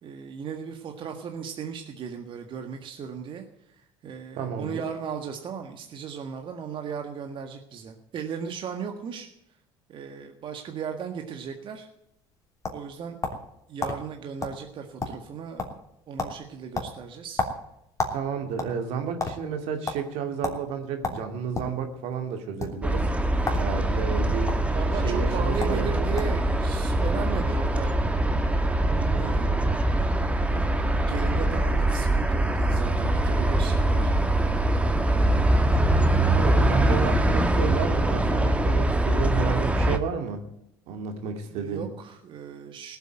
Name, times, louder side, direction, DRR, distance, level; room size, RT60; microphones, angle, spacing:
voice 1, 0.0-9.3 9.9-11.9 12.7-13.2 13.7-15.8 16.1-17.4 24.0-24.2 24.7-28.0 29.0-29.5 30.4-34.1 41.5-43.0, right 7 dB, 50° right, 5 dB, 1.7 m, -36 dB
voice 2, 4.4-4.8 18.1-23.1 23.6-24.5 25.0-26.1 36.3-40.4 40.9-41.9, right 6 dB, 70° right, 6 dB, 2.5 m, -31 dB
sound 1, 12.1-13.5 13.8-14.0 14.4-14.6 14.9-15.3 15.6-15.9 16.2-16.4 16.7-18.2 18.5-19.3 19.9-20.0 20.4-20.6 21.0-21.7 22.5-22.7 23.4-23.7 24.0-24.5 25.3-25.4 25.6-25.8 26.2-26.4, left 3 dB, 30° left, 3.2 m, -30 dB
sound 2, 22.8-40.0, right 1 dB, 10° right, 1.4 m, -23 dB
18.0 x 8.1 x 9.1 m, 0.79 s
supercardioid pair, 90°, 11 cm